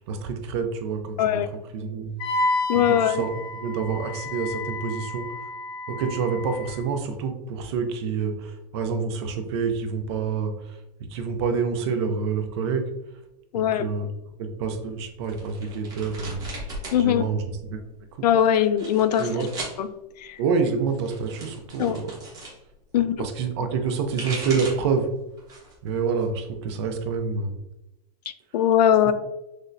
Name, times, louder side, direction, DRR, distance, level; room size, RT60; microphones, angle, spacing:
voice 1, 0.1-1.4 1.7-2.1 2.9-5.3 5.9-12.9 13.5-14.1 14.4-16.4 16.9-17.8 18.1-18.2 19.0-19.5 20.4-22.1 23.2-25.1 25.8-27.6, right 5 dB, 40° right, 6 dB, 0.5 m, -27 dB
Wind instrument woodwind instrument, 2.2-6.8, left 2 dB, 25° left, 0.7 m, -30 dB
voice 2, 2.7-3.2 13.5-13.9 16.9-17.2 18.2-19.4 19.8-19.9 20.2-20.4 21.8-22.0 22.9-23.2 28.5-29.1, left 10 dB, 75° left, 11 dB, 0.4 m, -20 dB
sound 1, 15.2-17.0 17.3-18.0 18.6-19.8 20.8-22.6 23.8-24.9 25.4-25.8 26.2-27.2, right 2 dB, 20° right, 1.0 m, -37 dB
6.2 x 2.1 x 2.6 m, 0.93 s
supercardioid pair, 160°, 21 cm